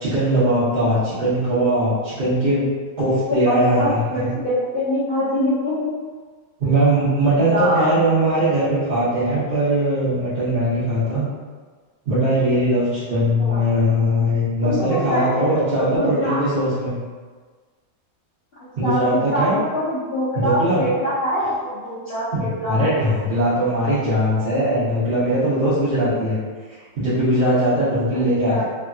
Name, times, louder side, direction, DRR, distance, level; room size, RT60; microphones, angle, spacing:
voice 1, 0.0-2.7 3.0-4.3 6.6-11.2 12.1-17.0 18.8-19.5 20.3-20.8 22.3-26.4 26.7-28.6, right 1 dB, 45° right, -13 dB, 0.7 m, -20 dB
voice 2, 3.3-5.9 6.6-6.7 7.5-7.9 13.4-13.6 14.6-16.4 18.8-19.5 19.7-22.8 28.4-28.6, equal, 80° left, -11 dB, 0.5 m, -24 dB
3.3 x 2.6 x 2.3 m, 1.5 s
omnidirectional pair, 1.9 m